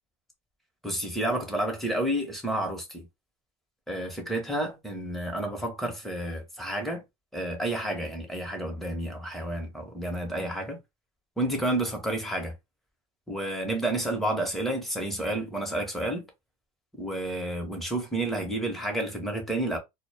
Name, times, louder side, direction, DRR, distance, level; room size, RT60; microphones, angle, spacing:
voice 1, 0.8-3.1 3.9-7.0 7.3-10.8 11.4-12.5 13.3-16.3 16.9-19.8, right 1 dB, ahead, 0.9 m, -30 dB
2.1 x 2.0 x 3.3 m
supercardioid pair, 120°, 15 cm